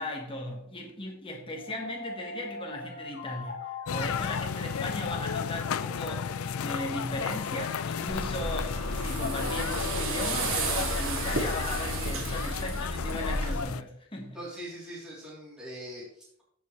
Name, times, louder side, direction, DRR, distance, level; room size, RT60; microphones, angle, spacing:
voice 1, 0.0-14.4, left 1 dB, 25° left, 1.4 m, -37 dB
sound 1, 1.5-12.5, left 4 dB, 60° left, 2.2 m, -43 dB
sound 2, 3.9-13.8, left 7 dB, 80° left, 0.4 m, -34 dB
sound 3, 8.1-13.6, right 1 dB, 75° right, 2.2 m, -32 dB
voice 2, 14.3-16.4, equal, 5° right, 3.2 m, -42 dB
15.0 x 5.5 x 3.2 m
head